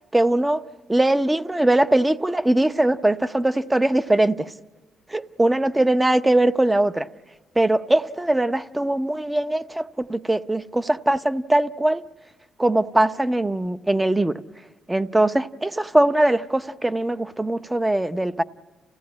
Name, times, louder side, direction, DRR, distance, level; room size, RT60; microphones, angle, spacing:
voice 1, 0.1-0.6 0.9-4.5 5.1-7.1 7.6-12.0 12.6-14.4 14.9-18.4, right 1 dB, 10° right, 0.7 m, -21 dB
28.5 x 16.5 x 9.6 m
cardioid pair, 90°, 0 cm